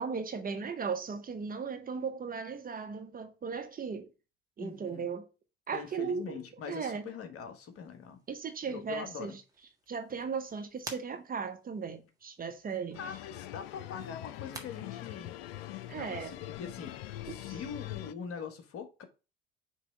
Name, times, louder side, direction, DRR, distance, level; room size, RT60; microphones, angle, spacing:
voice 1, 0.0-4.1 4.6-5.3 5.7-6.4 6.7-7.0 8.3-9.3 9.9-13.0 15.9-16.3 17.3-17.5, right 5 dB, 30° right, 0.9 m, -37 dB
voice 2, 4.6-5.1 5.7-8.2 8.7-9.3 13.0-15.3 15.9-17.0 17.2-19.0, left 7 dB, 45° left, 1.3 m, -43 dB
sound 1, 7.6-14.6, right 2 dB, 10° right, 1.5 m, -52 dB
sound 2, 12.9-18.1, left 15 dB, 70° left, 0.5 m, -43 dB
6.1 x 3.2 x 4.9 m
figure-of-eight pair, 60°, 31 cm